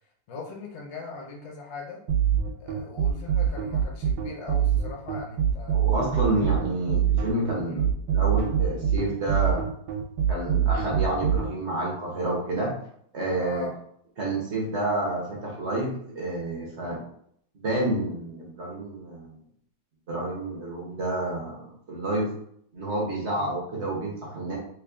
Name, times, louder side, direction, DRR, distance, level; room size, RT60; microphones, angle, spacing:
voice 1, 0.3-2.0 2.6-5.8 6.3-6.4 7.7-7.9 13.4-13.8 23.4-23.6, left 3 dB, 75° left, -1 dB, 0.6 m, -40 dB
sound 1, 2.1-11.5, right 9 dB, 70° right, 1.1 m, -24 dB
voice 2, 5.7-9.6 10.3-12.7 13.1-13.7 14.2-17.0 17.5-19.4 20.1-22.3 22.7-24.6, right 2 dB, 55° right, -3 dB, 0.8 m, -29 dB
3.1 x 2.4 x 3.6 m, 0.67 s
omnidirectional pair, 2.0 m